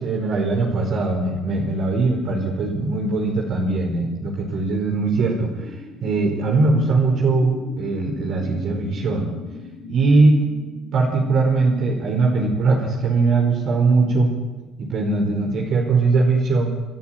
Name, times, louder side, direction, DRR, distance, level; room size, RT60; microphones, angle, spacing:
voice 1, 0.0-9.3 9.9-10.4 10.9-14.3 14.8-16.7, right 3 dB, 60° right, -1 dB, 5.0 m, -20 dB
sound 1, 3.6-14.8, left 2 dB, 85° left, 6.7 m, -41 dB
30.0 x 11.0 x 9.4 m, 1.2 s
supercardioid pair, 80°, 0 cm